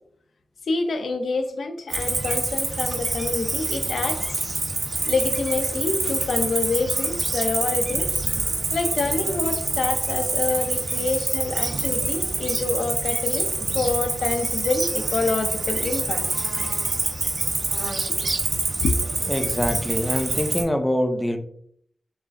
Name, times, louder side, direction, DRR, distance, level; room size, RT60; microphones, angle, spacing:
voice 1, 0.7-4.4 5.0-8.1 8.7-16.5 18.8-19.0, left 3 dB, 80° left, 6 dB, 0.5 m, -27 dB
Cricket, 1.9-20.6, right 3 dB, 55° right, 0.8 m, -26 dB
voice 2, 19.3-21.4, left 1 dB, 10° left, 5 dB, 0.4 m, -24 dB
6.3 x 2.4 x 2.5 m, 0.65 s
wide cardioid pair, 150°, 0 cm